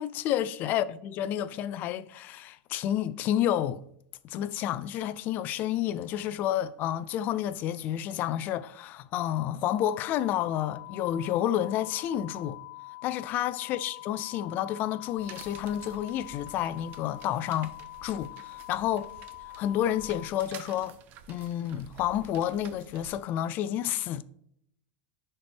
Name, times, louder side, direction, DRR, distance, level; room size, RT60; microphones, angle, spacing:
voice 1, 0.0-3.8 4.2-12.6 13.0-17.7 18.0-19.1 19.6-21.0 21.3-24.2, left 11 dB, 35° left, 0.4 m, -30 dB
sound 1, 9.6-20.3, left 22 dB, 60° left, 1.5 m, -45 dB
sound 2, 15.2-23.2, right 7 dB, 40° right, 0.6 m, -50 dB
10.5 x 4.4 x 3.4 m
supercardioid pair, 150°, 5 cm